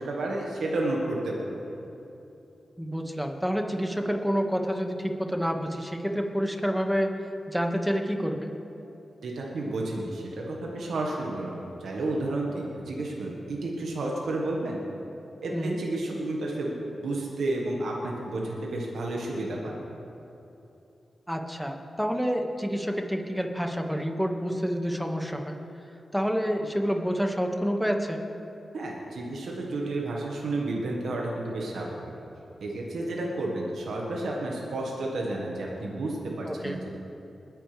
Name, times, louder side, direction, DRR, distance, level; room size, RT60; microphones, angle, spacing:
voice 1, 0.0-1.6 9.2-14.8 15.4-19.8 28.7-32.0 32.6-36.9, right 2 dB, 80° right, -2 dB, 1.6 m, -31 dB
voice 2, 2.8-7.1 7.5-8.5 15.5-15.8 21.3-25.5 26.1-28.2 36.5-36.8, equal, ahead, 3 dB, 1.8 m, -28 dB
21.0 x 10.0 x 3.5 m, 3.0 s
supercardioid pair, 45°, 0 cm